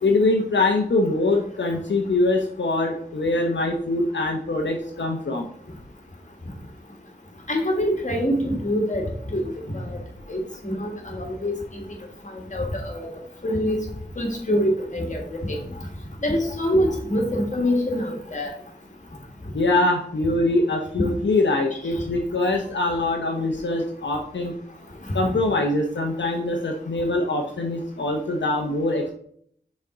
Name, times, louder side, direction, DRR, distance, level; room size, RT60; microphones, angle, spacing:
voice 1, 0.0-5.5 19.5-24.5 25.1-29.1, left 2 dB, 85° left, 1 dB, 0.7 m, -23 dB
voice 2, 7.5-9.0 9.3-9.5 9.7-10.0 10.3-11.5 12.5-13.1 13.4-13.8 14.2-15.2 15.5-15.6 16.2-18.5, equal, 45° left, 1 dB, 1.7 m, -24 dB
5.9 x 4.3 x 3.8 m, 0.63 s
wide cardioid pair, 70°, 18 cm